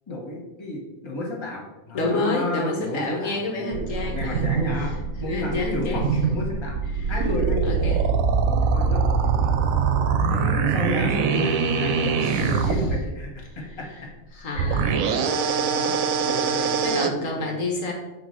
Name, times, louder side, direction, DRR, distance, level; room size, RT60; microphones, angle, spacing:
voice 1, 0.1-4.9 5.2-6.8 7.1-8.0 8.4-9.5 10.3-13.9 14.5-14.6 15.0-15.1 15.6-17.6, left 2 dB, 20° left, -3 dB, 1.2 m, -32 dB
voice 2, 1.9-4.4 5.2-6.2 6.9-7.1 7.6-8.1 12.1-12.7 14.3-14.9 15.3-15.6 16.5-17.9, left 2 dB, 70° left, 0 dB, 1.4 m, -29 dB
sound 1, 3.7-13.0 14.6-17.1, right 5 dB, 80° right, 1.0 m, -23 dB
6.0 x 3.1 x 5.6 m, 1.0 s
omnidirectional pair, 1.4 m